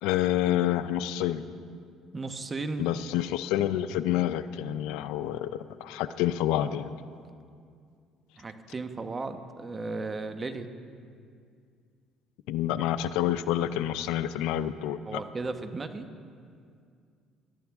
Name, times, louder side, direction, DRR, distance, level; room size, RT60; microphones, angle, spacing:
voice 1, 0.0-1.4 2.8-5.5 5.8-6.9 12.5-15.2, left 12 dB, 85° left, 13 dB, 0.5 m, -28 dB
voice 2, 2.1-2.9 8.4-10.7 15.1-16.1, right 3 dB, 25° right, 8 dB, 1.0 m, -35 dB
22.0 x 12.5 x 3.6 m, 2.3 s
cardioid pair, 105°, 0 cm